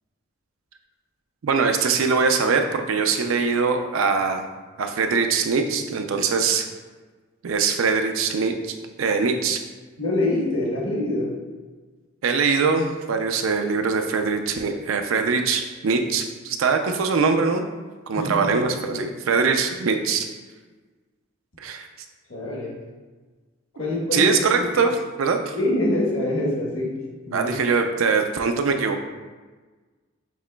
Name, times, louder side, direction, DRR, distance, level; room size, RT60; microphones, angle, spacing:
voice 1, 1.4-4.4 4.8-6.7 7.4-9.6 12.2-17.6 18.1-20.3 21.6-21.9 23.8-24.9 25.2-25.6 27.3-29.0, right 5 dB, 85° right, 5 dB, 0.4 m, -22 dB
voice 2, 10.0-11.4 18.1-19.0 22.3-22.8 23.7-24.9 25.5-26.9 27.3-27.5, left 1 dB, 70° left, -3 dB, 1.1 m, -25 dB
7.2 x 2.9 x 2.2 m, 1.3 s
head